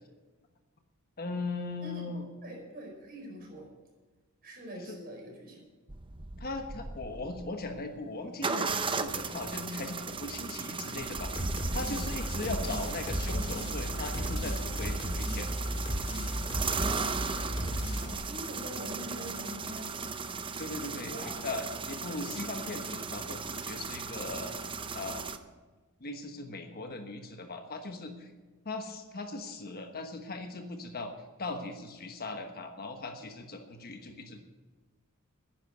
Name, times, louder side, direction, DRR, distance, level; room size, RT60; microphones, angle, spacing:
voice 1, 1.2-2.3 4.8-5.0 6.4-15.5 20.6-24.5 24.9-25.3 26.0-28.3 28.6-31.1 31.4-34.4, left 2 dB, 45° left, 5 dB, 1.3 m, -39 dB
voice 2, 2.4-3.7 4.4-5.6 17.9-19.9 21.1-21.4, equal, 45° right, 0 dB, 4.9 m, -44 dB
sound 1, 5.9-7.8 8.4-25.4, right 4 dB, 25° right, 0.7 m, -37 dB
sound 2, 11.3-18.1, equal, 25° left, 2.0 m, -34 dB
10.5 x 10.0 x 8.0 m, 1.3 s
head